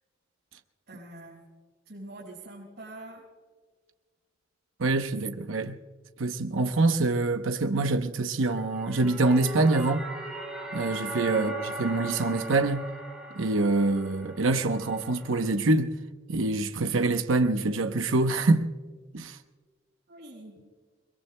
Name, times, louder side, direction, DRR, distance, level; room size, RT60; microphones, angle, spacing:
voice 1, 0.9-1.4 1.9-3.3 11.3-11.6 20.1-20.6, right 1 dB, 55° right, 5.6 m, -44 dB
voice 2, 4.8-5.8 6.2-10.1 10.7-12.9 13.3-15.9 16.3-18.7 19.1-19.4, right 2 dB, 85° right, 0.9 m, -25 dB
sound 1, 8.6-15.4, right 2 dB, 5° right, 6.7 m, -38 dB
29.5 x 21.5 x 2.2 m
head